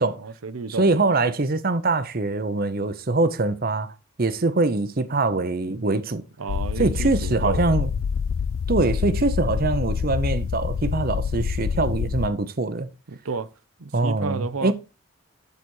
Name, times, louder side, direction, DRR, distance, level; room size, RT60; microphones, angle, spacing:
voice 1, 0.2-0.9 6.4-7.7 13.1-13.5 13.8-14.7, right 4 dB, 85° right, 0.8 m, -32 dB
voice 2, 0.7-6.2 6.8-7.9 8.7-12.9 13.9-14.7, right 3 dB, 45° right, 0.7 m, -23 dB
sound 1, 6.5-12.3, left 6 dB, 70° left, 0.3 m, -26 dB
12.0 x 4.1 x 4.7 m
head